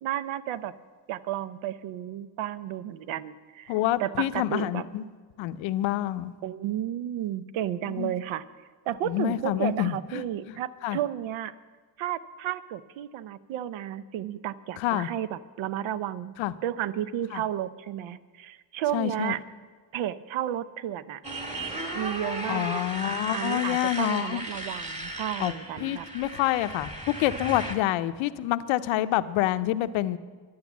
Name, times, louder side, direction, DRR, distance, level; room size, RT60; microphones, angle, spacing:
voice 1, 0.0-0.7 1.1-4.8 6.4-8.4 8.9-11.5 12.0-16.3 16.6-19.4 19.9-21.2 21.9-22.8 23.3-26.1, right 11 dB, 80° right, 15 dB, 0.7 m, -32 dB
voice 2, 3.7-5.0 5.4-6.3 8.0-8.1 9.1-10.2 10.8-11.0 14.8-15.1 16.4-16.5 17.3-17.4 18.9-19.3 22.5-24.4 25.4-25.5 25.8-30.2, left 14 dB, 90° left, 13 dB, 0.7 m, -27 dB
Motorcycle, 21.2-27.7, right 1 dB, 15° right, 1.7 m, -35 dB
11.0 x 10.5 x 7.1 m, 1.5 s
cardioid pair, 105°, 46 cm